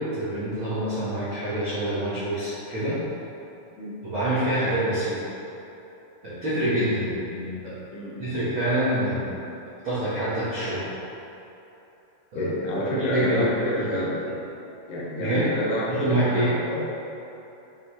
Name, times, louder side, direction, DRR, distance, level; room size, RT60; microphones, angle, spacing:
voice 1, 0.0-3.0 4.0-5.2 6.2-7.8 8.2-9.4 9.8-10.8 12.3-12.5 12.9-13.4 13.8-14.0 15.2-15.5 15.9-16.5, right 1 dB, 85° right, -12 dB, 1.1 m, -26 dB
voice 2, 7.9-8.4 12.3-14.3 14.9-16.8, left 1 dB, 75° left, -5 dB, 2.7 m, -28 dB
9.1 x 5.9 x 3.3 m, 3.0 s
omnidirectional pair, 5.1 m